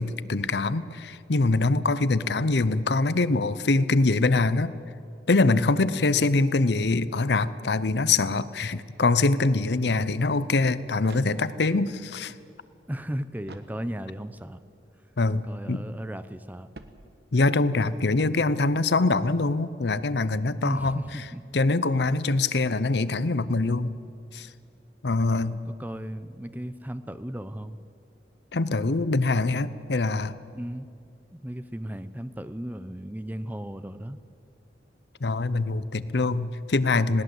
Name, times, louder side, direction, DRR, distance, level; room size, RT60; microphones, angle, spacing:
voice 1, 0.0-4.7 5.3-12.3 15.2-15.8 17.3-21.0 21.5-23.9 24.3-24.5 25.0-25.6 28.5-30.4 35.2-37.2, left 3 dB, 70° left, 16 dB, 0.7 m, -24 dB
sound 1, 11.0-11.9 13.4-14.3 16.7-17.6, right 2 dB, 65° right, 1.3 m, -50 dB
voice 2, 12.9-14.6 15.4-16.7 20.6-21.4 25.6-27.8 30.5-30.9 31.3-34.2, equal, 10° right, 12 dB, 0.7 m, -35 dB
20.5 x 18.0 x 8.0 m, 2.5 s
head